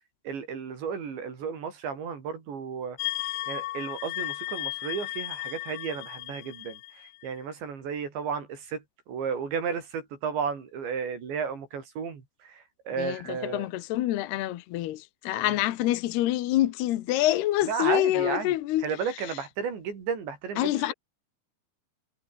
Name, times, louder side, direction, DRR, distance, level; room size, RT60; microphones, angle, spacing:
voice 1, 0.2-13.6 15.3-15.6 17.7-18.5 18.8-20.9, right 6 dB, 65° right, 6.5 m, -33 dB
sound 1, 3.0-7.4, left 19 dB, 85° left, 3.4 m, -35 dB
voice 2, 13.0-18.9 19.3-19.4 20.6-20.9, left 14 dB, 70° left, 2.9 m, -26 dB
omnidirectional pair, 5.5 m